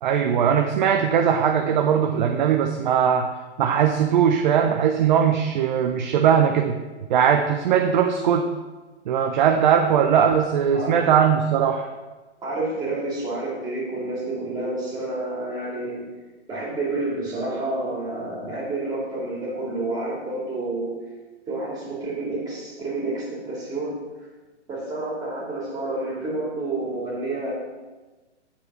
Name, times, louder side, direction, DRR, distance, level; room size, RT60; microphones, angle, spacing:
voice 1, 0.0-6.8 7.1-8.5 9.1-11.9, right 8 dB, 40° right, 4 dB, 0.6 m, -20 dB
voice 2, 10.7-11.1 12.4-16.1 16.5-21.0 21.5-24.0 24.7-27.5, right 2 dB, 10° right, -6 dB, 2.6 m, -29 dB
8.9 x 4.4 x 5.5 m, 1.2 s
hypercardioid pair, 140°, 35 cm